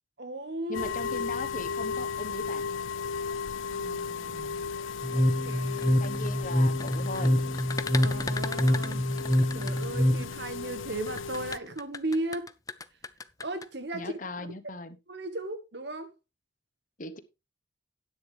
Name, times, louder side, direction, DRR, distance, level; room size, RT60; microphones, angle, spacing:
voice 1, 0.2-1.2 3.7-4.6 5.1-6.0 7.9-9.1 9.5-12.5 13.4-14.2 15.1-16.1, right 1 dB, 60° right, 1.5 m, -36 dB
sound 1, 0.7-11.6, left 5 dB, 85° left, 0.5 m, -35 dB
voice 2, 0.7-2.7 6.0-7.4 13.9-15.0 17.0-17.2, left 2 dB, 40° left, 1.0 m, -38 dB
sound 2, 5.0-10.3, equal, 5° right, 0.9 m, -26 dB
sound 3, 5.7-10.3 11.1-13.7, left 4 dB, 20° left, 0.5 m, -38 dB
11.5 x 9.8 x 3.3 m
head